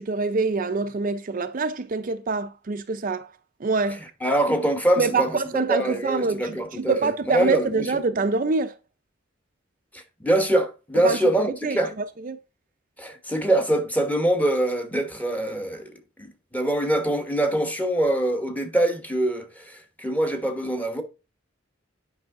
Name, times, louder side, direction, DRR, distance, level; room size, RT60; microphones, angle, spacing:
voice 1, 0.0-3.3 3.6-4.0 5.0-8.7 11.0-11.2 11.6-12.4, right 4 dB, 45° right, 0.5 m, -25 dB
voice 2, 4.2-8.0 9.9-11.9 13.0-21.0, right 1 dB, 10° left, 1.2 m, -24 dB
9.4 x 5.6 x 3.7 m
head